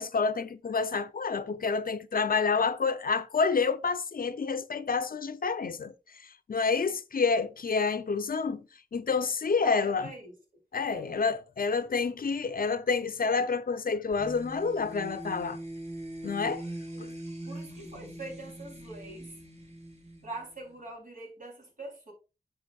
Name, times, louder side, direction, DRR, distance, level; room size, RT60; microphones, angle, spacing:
voice 1, 0.0-5.9 6.5-8.6 8.9-10.1 10.7-15.6 16.2-16.6 17.0-17.1, left 5 dB, 70° left, 0.7 m, -28 dB
voice 2, 9.6-10.6 10.9-11.2 16.6-17.2 17.4-19.4 20.2-22.1, right 1 dB, 60° right, 3.7 m, -44 dB
sound 1, 14.1-20.8, right 1 dB, 45° right, 2.7 m, -42 dB
9.9 x 6.2 x 2.4 m
wide cardioid pair, 80°, 15 cm